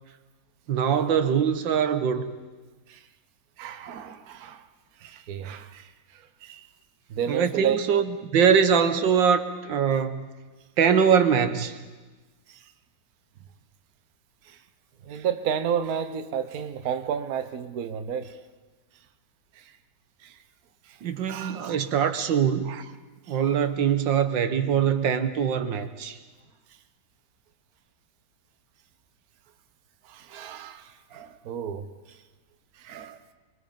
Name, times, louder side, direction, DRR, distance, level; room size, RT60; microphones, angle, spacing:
voice 1, 0.7-2.3 7.3-10.3 10.8-11.8 21.0-22.8 23.3-26.2, right 7 dB, 85° right, 1.8 m, -23 dB
voice 2, 3.6-4.7 5.0-6.7 7.1-7.8 12.5-12.7 14.4-14.6 15.0-18.4 19.5-19.8 20.2-20.4 20.8-21.0 21.3-21.8 22.6-22.8 23.3-23.4 30.0-32.2 32.8-33.2, right 8 dB, 60° right, 1.4 m, -32 dB
25.5 x 23.5 x 5.3 m
omnidirectional pair, 2.0 m